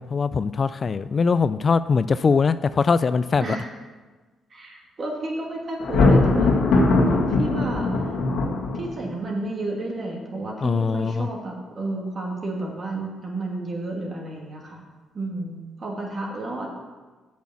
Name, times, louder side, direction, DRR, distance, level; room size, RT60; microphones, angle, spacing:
voice 1, 0.0-3.6 10.6-11.3, left 5 dB, 40° left, 14 dB, 0.3 m, -22 dB
voice 2, 4.5-6.5 6.8-8.1 8.7-14.8 15.1-16.7, right 2 dB, 40° right, -1 dB, 2.5 m, -32 dB
Thunder, 5.8-9.1, left 2 dB, 80° left, 1.7 m, -20 dB
8.3 x 6.3 x 7.2 m, 1.3 s
cardioid pair, 90°, 0 cm